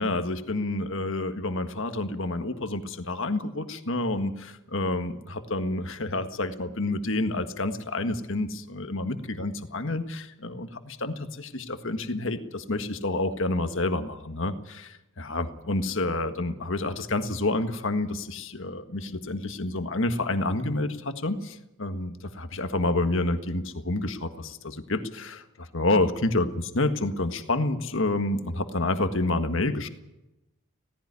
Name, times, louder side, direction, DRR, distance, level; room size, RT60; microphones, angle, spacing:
voice 1, 0.0-29.9, left 2 dB, 60° left, 8 dB, 1.6 m, -29 dB
17.5 x 15.5 x 9.7 m, 0.91 s
head